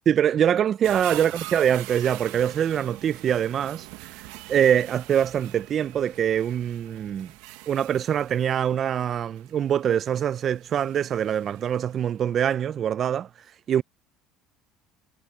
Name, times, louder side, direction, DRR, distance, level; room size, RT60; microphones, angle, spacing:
voice 1, 0.1-3.9 4.5-7.3 7.7-13.3 13.7-13.8, right 9 dB, 40° right, 0.4 m, -24 dB
sound 1, 0.8-12.0 12.5-12.6, right 20 dB, 80° right, 1.0 m, -43 dB
cardioid pair, 130°, 0 cm